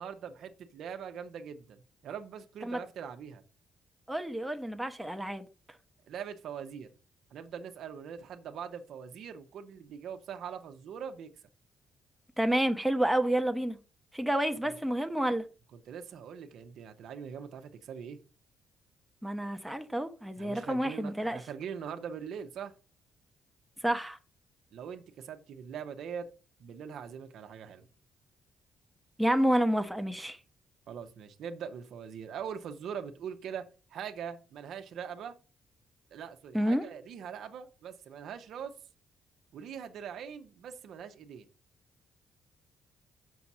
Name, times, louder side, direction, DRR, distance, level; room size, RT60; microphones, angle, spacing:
voice 1, 0.0-3.4 6.1-6.9 7.3-11.3 14.6-14.7 15.7-18.2 20.4-22.7 24.7-26.3 26.6-27.9 30.9-33.6 33.9-35.3 36.1-38.7 39.5-41.4, right 7 dB, 75° right, 0.9 m, -42 dB
voice 2, 4.1-5.5 12.4-13.8 14.1-15.4 19.2-21.4 23.8-24.2 29.2-30.4 36.5-36.8, right 1 dB, 5° right, 0.9 m, -29 dB
6.4 x 4.2 x 6.0 m
cardioid pair, 90°, 0 cm